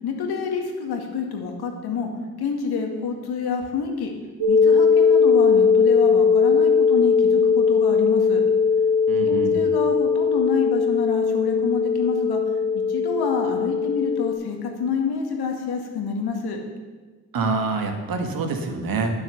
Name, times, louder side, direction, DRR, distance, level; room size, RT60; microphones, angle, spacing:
voice 1, 0.0-2.1 2.4-4.1 4.5-8.4 9.3-12.4 12.9-16.6, left 5 dB, 70° left, 2 dB, 2.0 m, -27 dB
sound 1, 4.4-14.3, left 5 dB, 75° right, 2.2 m, -19 dB
voice 2, 9.1-9.6 17.3-19.1, right 4 dB, 60° right, 4 dB, 1.9 m, -26 dB
9.1 x 8.0 x 7.0 m, 1.3 s
supercardioid pair, 60°, 41 cm